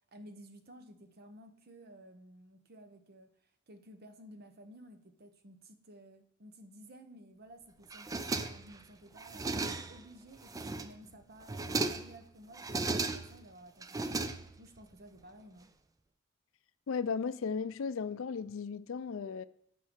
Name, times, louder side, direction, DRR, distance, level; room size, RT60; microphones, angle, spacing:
voice 1, 0.1-3.3 3.7-15.7, right 1 dB, 50° right, 0.8 m, -54 dB
sound 1, 7.9-8.8 9.2-10.0 10.4-11.1 11.4-12.2 12.5-13.4 13.8-14.8, right 3 dB, 15° right, 0.3 m, -36 dB
voice 2, 16.9-19.4, left 5 dB, 70° left, 0.4 m, -35 dB
9.2 x 5.6 x 5.1 m
head